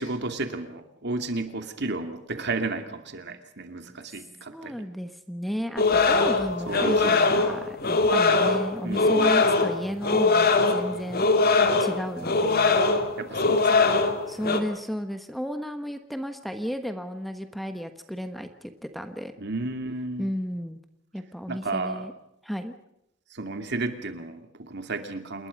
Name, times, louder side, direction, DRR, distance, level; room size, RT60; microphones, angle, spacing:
voice 1, 0.0-4.8 6.7-7.2 7.4-7.6 8.8-9.4 13.2-14.0 19.4-20.3 21.5-22.1 23.3-25.5, right 3 dB, 55° right, 7 dB, 2.6 m, -33 dB
voice 2, 4.5-11.3 11.8-12.8 14.3-19.3 20.2-20.8 21.1-22.1 22.4-22.7, equal, ahead, 8 dB, 1.3 m, -33 dB
sound 1, 5.8-14.6, left 3 dB, 50° left, 2.5 m, -22 dB
28.0 x 21.0 x 5.3 m, 0.79 s
head